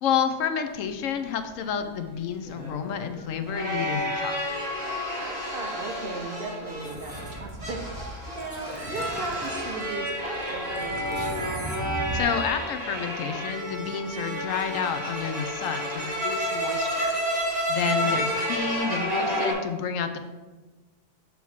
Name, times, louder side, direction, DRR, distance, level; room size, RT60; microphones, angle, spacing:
voice 1, 0.0-4.6 12.1-17.2 17.7-20.2, left 7 dB, 75° left, 8 dB, 0.9 m, -30 dB
sound 1, 1.8-19.5, equal, 30° right, 1.6 m, -30 dB
voice 2, 5.2-11.5 17.9-18.2, right 2 dB, 55° right, 3 dB, 0.8 m, -37 dB
sound 2, 6.8-12.2, right 1 dB, 10° right, 0.8 m, -38 dB
7.0 x 3.1 x 5.4 m, 1.2 s
omnidirectional pair, 1.4 m